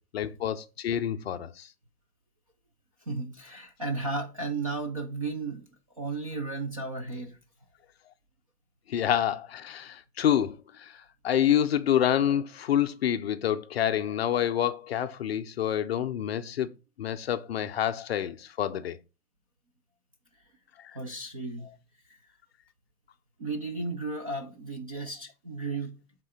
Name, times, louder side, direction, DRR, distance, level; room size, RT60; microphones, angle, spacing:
voice 1, 0.1-1.7 8.9-16.7 17.0-19.0, left 10 dB, 40° left, 0.5 m, -27 dB
voice 2, 3.1-5.6 6.0-7.4 20.9-21.8 23.4-26.0, right 3 dB, 25° right, 0.4 m, -34 dB
7.8 x 3.7 x 4.9 m
hypercardioid pair, 145°, 49 cm